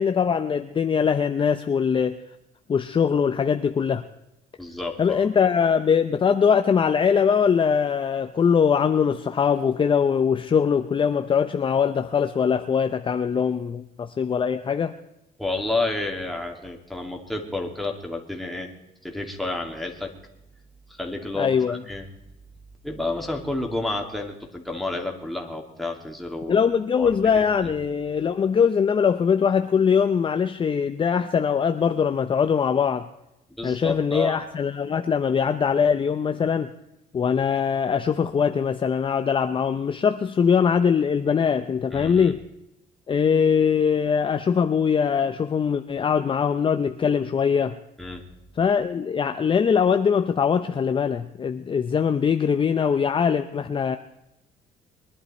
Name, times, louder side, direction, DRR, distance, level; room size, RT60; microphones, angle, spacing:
voice 1, 0.0-2.2 2.7-4.0 5.0-14.9 21.4-21.8 26.5-33.1 33.6-36.7 37.1-42.4 43.1-47.8 48.6-54.0, left 6 dB, 30° left, 0.6 m, -22 dB
voice 2, 4.6-5.3 15.4-18.7 19.0-20.1 20.9-22.1 22.8-26.6 27.0-27.7 33.6-34.4 41.9-42.3 48.0-48.2, left 2 dB, ahead, 2.5 m, -30 dB
22.0 x 11.5 x 4.3 m
cardioid pair, 110°, 17 cm